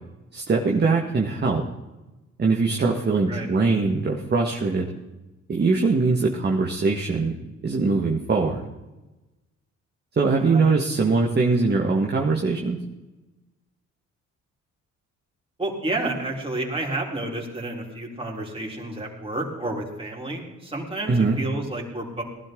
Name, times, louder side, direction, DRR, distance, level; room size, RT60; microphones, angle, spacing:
voice 1, 0.3-1.6 2.4-4.9 5.5-7.4 7.6-8.6 10.1-12.8 21.1-21.4, right 4 dB, 35° right, 0 dB, 1.7 m, -22 dB
voice 2, 15.6-22.2, right 2 dB, 20° right, -2 dB, 4.1 m, -30 dB
19.5 x 11.5 x 3.9 m, 1.1 s
cardioid pair, 90°, 30 cm